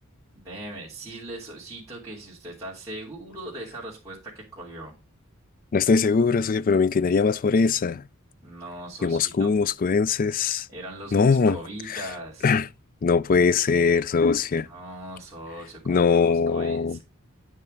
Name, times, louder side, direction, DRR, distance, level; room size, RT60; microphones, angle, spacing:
voice 1, 0.3-4.9 8.4-9.5 10.7-12.5 14.6-17.0, right 1 dB, 15° right, 2.9 m, -40 dB
voice 2, 5.7-8.0 9.0-10.7 11.1-11.6 11.9-12.0 12.4-12.7 13.0-14.7 15.9-17.0, left 5 dB, 40° left, 0.4 m, -21 dB
9.5 x 5.5 x 5.2 m
head